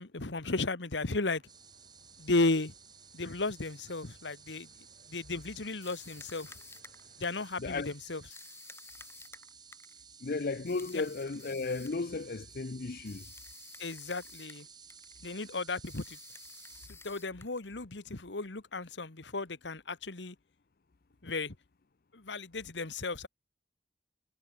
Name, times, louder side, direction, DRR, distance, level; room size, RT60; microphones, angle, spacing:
voice 1, 0.0-1.4 2.2-2.7 3.1-4.7 5.1-6.5 7.2-8.2 10.9-11.0 13.8-14.7 15.2-16.2 16.9-20.3 21.2-21.5 22.1-23.3, left 3 dB, 85° left, 1.6 m, -34 dB
sound 1, 0.9-7.5, right 2 dB, 50° right, 4.9 m, -65 dB
sound 2, 1.5-16.9, right 6 dB, 25° right, 4.6 m, -55 dB
sound 3, 5.8-7.5 8.3-10.0 10.7-12.1 13.0-14.6 14.9-15.2 15.8-17.8, left 4 dB, 15° left, 3.3 m, -52 dB
voice 2, 7.6-7.9 10.2-13.2, left 3 dB, 55° left, 0.6 m, -34 dB
head